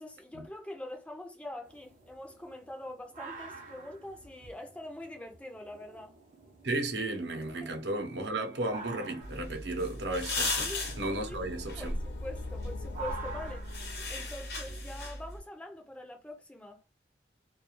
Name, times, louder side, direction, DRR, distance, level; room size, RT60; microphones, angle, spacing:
voice 1, 0.0-6.2 7.6-7.8 10.6-10.9 11.3-11.4 11.8-16.8, left 1 dB, 5° left, 0.4 m, -44 dB
sound 1, 1.6-15.1, right 4 dB, 45° right, 0.7 m, -49 dB
voice 2, 6.6-10.7 11.0-11.9, right 2 dB, 80° right, 0.7 m, -34 dB
sound 2, 9.2-15.4, left 2 dB, 65° left, 0.9 m, -37 dB
sound 3, 10.0-14.6, left 3 dB, 90° left, 0.4 m, -44 dB
2.4 x 2.3 x 2.9 m
head